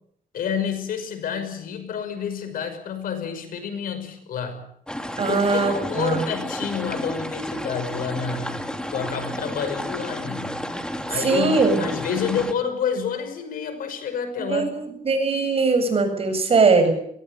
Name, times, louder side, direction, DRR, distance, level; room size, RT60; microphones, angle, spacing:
voice 1, 0.3-4.6 5.3-8.6 8.9-10.6 11.1-14.7, left 7 dB, 85° left, 8 dB, 5.8 m, -29 dB
sound 1, 4.9-12.5, equal, 5° left, 2.9 m, -31 dB
voice 2, 5.2-6.2 11.1-11.8 14.5-16.9, right 4 dB, 45° right, 7 dB, 7.5 m, -20 dB
22.5 x 19.0 x 8.2 m, 0.69 s
cardioid pair, 115°, 14 cm